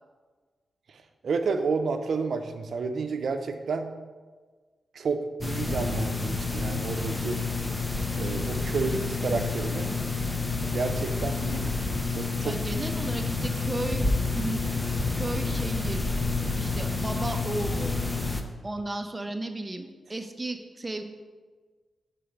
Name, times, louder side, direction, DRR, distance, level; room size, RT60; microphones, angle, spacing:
voice 1, 1.2-3.9 4.9-7.4 8.2-9.9 10.7-11.7 12.2-12.5, right 4 dB, 70° right, 7 dB, 0.5 m, -30 dB
sound 1, 5.4-18.4, left 3 dB, 15° left, 0.6 m, -29 dB
voice 2, 12.4-16.2 16.5-18.0 18.6-21.0, right 2 dB, 20° right, 6 dB, 0.6 m, -34 dB
5.7 x 4.0 x 5.0 m, 1.4 s
cardioid pair, 80°, 0 cm